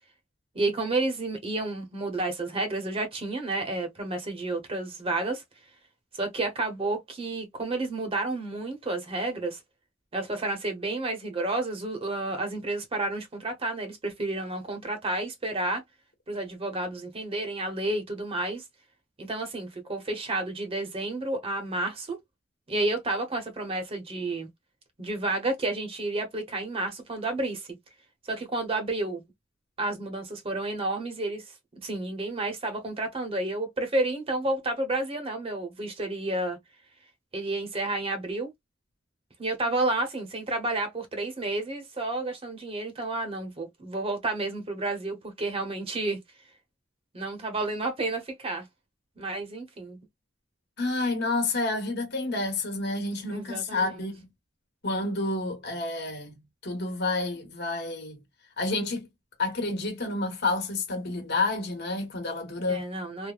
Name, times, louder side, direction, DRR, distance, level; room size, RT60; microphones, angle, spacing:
voice 1, 0.5-5.4 6.1-9.6 10.1-15.8 16.3-18.6 19.2-22.2 22.7-24.5 25.0-27.7 28.3-29.2 29.8-31.5 31.8-36.6 37.3-38.5 39.4-46.2 47.1-48.6 49.2-50.0 53.3-54.0 62.7-63.3, right 2 dB, 30° right, 0.8 m, -30 dB
voice 2, 50.8-54.3 54.8-58.2 58.6-59.1 59.4-62.9, left 2 dB, 60° left, 1.2 m, -29 dB
3.3 x 2.1 x 2.3 m
head